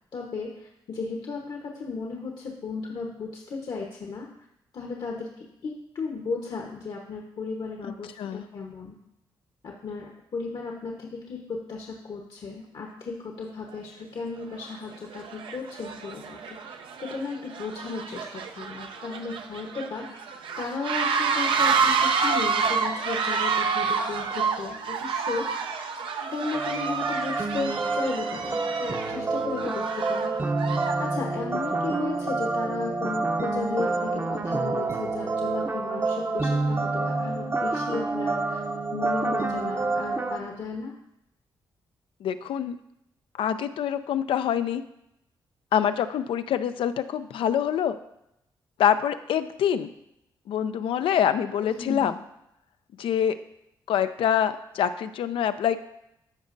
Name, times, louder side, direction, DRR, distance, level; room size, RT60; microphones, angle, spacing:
voice 1, 0.1-4.5 4.7-9.0 9.6-16.7 17.0-20.3 20.6-25.8 26.3-30.5 31.0-38.6 38.9-40.9 51.6-52.1, left 4 dB, 60° left, 0 dB, 1.0 m, -35 dB
sound 1, 13.7-13.8 14.5-14.8 15.1-31.1, right 5 dB, 75° right, 0.7 m, -29 dB
sound 2, 26.5-40.4, right 3 dB, 25° right, 0.8 m, -28 dB
voice 2, 42.2-42.8 43.4-44.8 45.7-48.0 48.8-49.9 50.5-52.1 53.0-53.4 53.9-55.8, left 9 dB, 75° left, 11 dB, 0.4 m, -25 dB
13.5 x 5.1 x 2.6 m, 0.82 s
cardioid pair, 65°, 9 cm